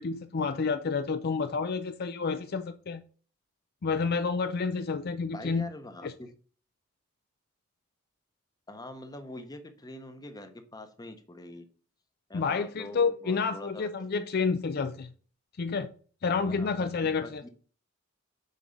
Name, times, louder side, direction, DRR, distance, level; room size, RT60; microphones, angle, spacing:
voice 1, 0.0-3.0 3.8-5.7 6.0-6.1 12.3-15.1 15.6-15.9 16.2-17.5, left 5 dB, 50° left, 0.4 m, -29 dB
voice 2, 5.3-6.3 8.7-11.6 12.3-13.9 16.5-17.5, left 1 dB, 20° left, 0.9 m, -44 dB
6.6 x 4.6 x 5.4 m
head